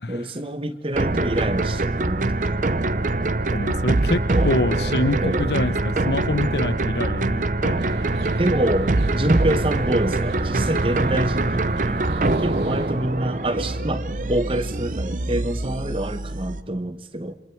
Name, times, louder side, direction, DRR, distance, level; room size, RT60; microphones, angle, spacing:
voice 1, 0.1-2.7 4.1-4.5 5.2-5.5 8.4-17.3, right 1 dB, 30° right, 10 dB, 1.1 m, -26 dB
sound 1, 0.9-16.6, right 2 dB, 45° right, 0.8 m, -24 dB
voice 2, 3.5-7.8, left 2 dB, 75° left, 13 dB, 1.1 m, -25 dB
sound 2, 7.8-12.9, right 1 dB, 80° right, 1.8 m, -36 dB
27.5 x 25.5 x 4.7 m, 1.1 s
head